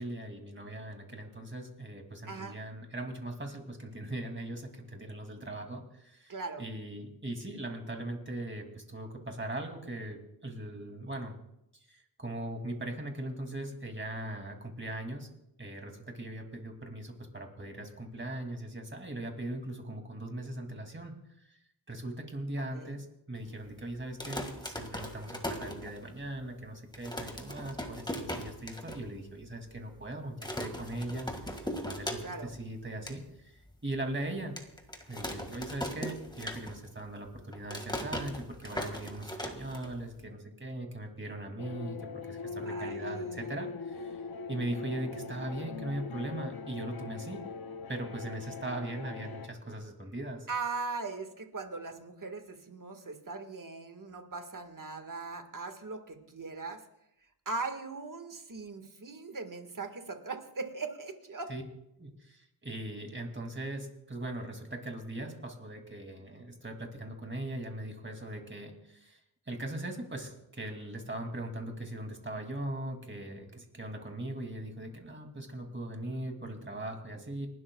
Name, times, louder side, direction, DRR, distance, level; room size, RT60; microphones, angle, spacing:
voice 1, 0.0-11.3 11.9-15.3 15.6-21.2 21.5-21.6 21.9-34.6 35.1-42.0 42.3-44.2 44.5-47.4 47.9-50.5 61.5-61.6 62.0-69.2 69.5-77.5, right 1 dB, 25° right, 3 dB, 2.6 m, -40 dB
voice 2, 2.3-2.6 6.3-6.6 22.7-22.9 32.2-32.5 42.7-43.5 50.5-56.8 57.5-61.5, right 4 dB, 45° right, 6 dB, 1.8 m, -39 dB
sound 1, 24.0-26.3 26.6-26.7 26.9-29.0 29.4-29.5 29.7-30.0 30.4-32.6 32.8-33.2 33.7-33.8 34.6-37.0 37.3-40.2, equal, 10° left, 1.9 m, -39 dB
sound 2, 41.6-49.5, left 4 dB, 55° left, 0.7 m, -41 dB
30.0 x 12.0 x 2.4 m, 0.81 s
wide cardioid pair, 80°, 43 cm